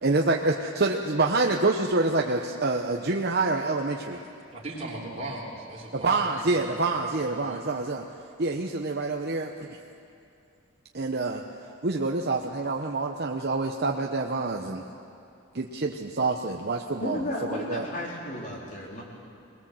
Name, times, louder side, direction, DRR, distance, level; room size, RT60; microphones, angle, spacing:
voice 1, 0.0-4.2 5.9-8.0 8.4-9.8 10.9-11.4 11.8-14.8 15.5-17.2 17.5-17.8, right 3 dB, 50° right, 2 dB, 0.9 m, -27 dB
voice 2, 4.5-7.6, right 2 dB, 30° right, -7 dB, 3.8 m, -39 dB
voice 3, 17.0-19.0, left 1 dB, 40° left, -2 dB, 4.1 m, -33 dB
23.0 x 20.0 x 7.7 m, 2.6 s
head